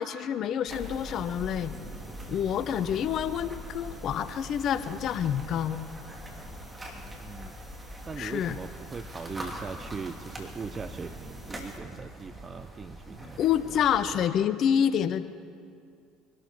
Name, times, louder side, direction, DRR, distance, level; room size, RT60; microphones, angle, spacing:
voice 1, 0.0-1.7 2.3-5.8 8.2-8.6 13.4-15.2, left 9 dB, 55° left, 13 dB, 0.7 m, -27 dB
sound 1, 0.7-14.1, equal, 15° right, 3.0 m, -42 dB
voice 2, 7.1-7.5 8.1-14.2, right 5 dB, 35° right, 12 dB, 0.5 m, -40 dB
24.5 x 12.5 x 4.5 m, 2.3 s
hypercardioid pair, 65°, 0 cm